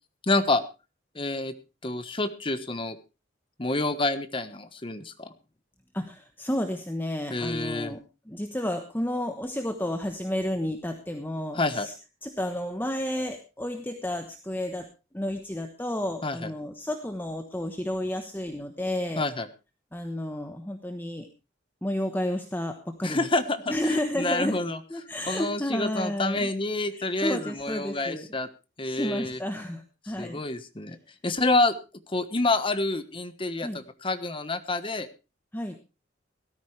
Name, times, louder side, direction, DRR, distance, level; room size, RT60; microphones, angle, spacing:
voice 1, 0.2-0.6 1.1-1.5 1.8-3.0 3.6-5.3 7.3-7.9 11.5-11.9 16.2-16.5 19.2-19.5 23.0-23.7 24.2-24.8 25.3-28.5 28.8-29.4 30.2-31.0 31.2-31.7 32.1-35.1, left 2 dB, 25° left, 10 dB, 1.2 m, -28 dB
voice 2, 5.9-11.9 12.2-14.9 15.1-19.2 19.9-21.3 21.8-23.3 23.7-24.6 24.9-26.5 26.9-28.3 28.8-30.4 33.6-33.8 35.5-35.8, left 1 dB, 10° left, 5 dB, 1.1 m, -31 dB
17.5 x 13.5 x 3.3 m, 0.30 s
head